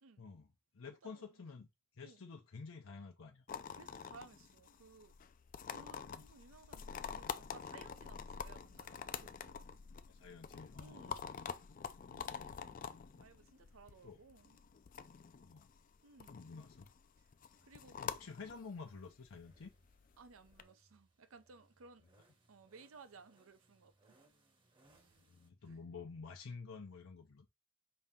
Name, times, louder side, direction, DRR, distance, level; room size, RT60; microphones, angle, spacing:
voice 1, 0.2-0.5 0.7-1.7 1.9-3.5 6.1-6.2 7.1-7.2 10.0-11.1 12.3-12.5 14.0-14.2 15.4-15.7 16.3-16.9 18.0-19.7 25.3-27.5, left 4 dB, 80° left, 0.7 m, -50 dB
voice 2, 0.9-1.4 2.0-2.2 3.7-5.1 5.7-9.7 10.8-11.3 12.1-14.6 16.0-16.4 17.2-17.3 17.6-18.0 20.2-22.0 22.5-24.2 24.8-25.2 25.6-25.8, right 4 dB, 85° right, 0.6 m, -60 dB
sound 1, 3.5-20.6, left 7 dB, 40° left, 0.4 m, -47 dB
sound 2, 17.4-25.5, right 2 dB, 25° right, 0.9 m, -72 dB
5.4 x 2.8 x 3.5 m
head